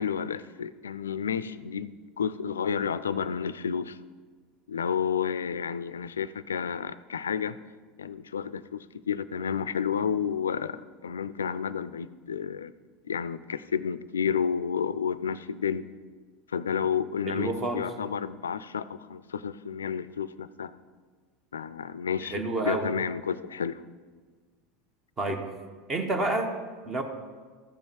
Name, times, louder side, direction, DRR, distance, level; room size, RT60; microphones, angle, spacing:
voice 1, 0.0-4.0 4.7-7.6 8.0-12.7 13.0-15.8 16.5-20.7 21.5-23.8, left 7 dB, 85° left, 16 dB, 0.3 m, -31 dB
voice 2, 17.2-17.9 22.3-22.8 25.2-25.4 25.9-26.5 26.8-27.0, right 2 dB, 30° right, 6 dB, 1.3 m, -29 dB
14.5 x 5.4 x 4.7 m, 1.5 s
hypercardioid pair, 80°, 0 cm